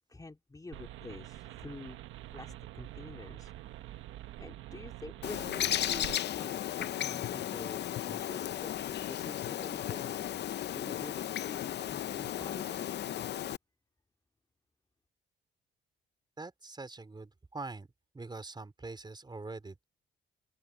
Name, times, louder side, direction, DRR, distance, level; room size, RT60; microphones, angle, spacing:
voice 1, 0.1-2.0 2.3-4.0 4.4-10.1 10.7-12.9, left 2 dB, 20° left, 3.4 m, -48 dB
sound 1, 0.7-6.2, right 14 dB, 85° right, 1.3 m, -46 dB
Bird, 5.2-13.6, left 11 dB, 60° left, 0.6 m, -35 dB
voice 2, 16.4-17.9 18.1-19.8, right 3 dB, 20° right, 3.7 m, -43 dB
open air
cardioid pair, 90°, 20 cm